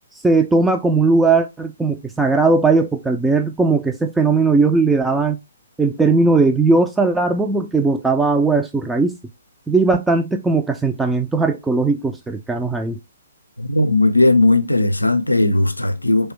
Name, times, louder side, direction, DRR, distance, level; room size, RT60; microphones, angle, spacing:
voice 1, 0.2-5.4 5.8-9.2 9.7-13.0, right 3 dB, 5° right, 0.3 m, -18 dB
voice 2, 13.6-16.3, left 2 dB, 85° left, 0.4 m, -17 dB
3.2 x 3.2 x 3.1 m
figure-of-eight pair, 125°, 0 cm